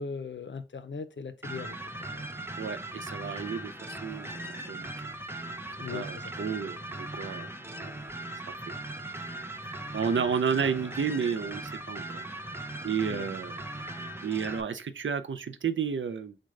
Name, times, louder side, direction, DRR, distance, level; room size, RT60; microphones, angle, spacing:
voice 1, 0.0-2.2 5.8-6.6 13.1-13.3, left 5 dB, 75° left, 0.5 m, -40 dB
sound 1, 1.4-14.6, right 1 dB, 10° right, 0.5 m, -39 dB
voice 2, 2.6-4.9 5.9-7.5 7.8-7.9 8.6-8.7 9.4-12.2 12.8-13.6 14.2-16.4, right 6 dB, 85° right, 0.4 m, -32 dB
6.3 x 2.2 x 3.6 m
wide cardioid pair, 60°, 19 cm